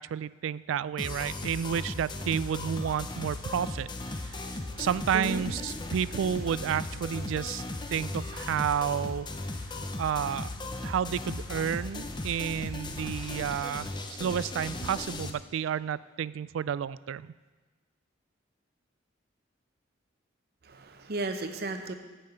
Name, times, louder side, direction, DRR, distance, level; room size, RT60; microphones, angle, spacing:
voice 1, 0.0-7.6 7.9-9.3 10.0-10.5 10.8-13.9 14.2-17.3, right 8 dB, 85° right, 19 dB, 0.3 m, -31 dB
sound 1, 1.0-15.3, left 2 dB, 25° left, 0.6 m, -37 dB
voice 2, 5.1-5.5 10.8-10.9 20.6-21.9, right 2 dB, 55° right, 7 dB, 0.8 m, -35 dB
10.5 x 5.6 x 8.0 m, 1.3 s
head